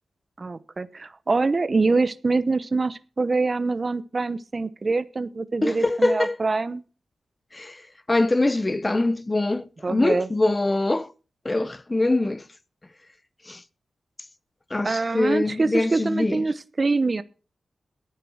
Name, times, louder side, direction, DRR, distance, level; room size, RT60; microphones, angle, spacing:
voice 1, 0.4-6.8 9.8-10.3 14.8-17.2, right 3 dB, 40° right, 0.9 m, -24 dB
voice 2, 5.6-6.4 7.5-11.1 11.4-12.5 13.5-13.6 14.7-16.5, left 2 dB, 25° left, 0.7 m, -23 dB
10.5 x 9.3 x 6.3 m
cardioid pair, 70°, 0 cm